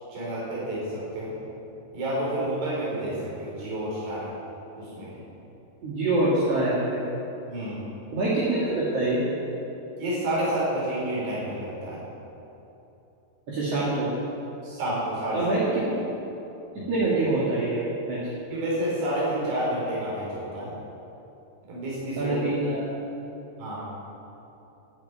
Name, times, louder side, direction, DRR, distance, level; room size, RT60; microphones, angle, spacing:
voice 1, 0.1-1.3 1.9-4.3 4.8-5.1 7.5-7.8 10.0-12.0 14.6-15.4 16.8-16.9 18.5-20.8 21.7-22.4 23.6-23.8, right 1 dB, 70° right, -7 dB, 6.4 m, -29 dB
voice 2, 5.8-7.0 8.1-9.2 13.5-14.1 15.3-15.6 15.9-16.0 16.9-17.8 18.1-18.2 22.2-22.8, right 2 dB, 45° right, -8 dB, 2.5 m, -25 dB
11.5 x 9.2 x 9.6 m, 3.0 s
omnidirectional pair, 5.1 m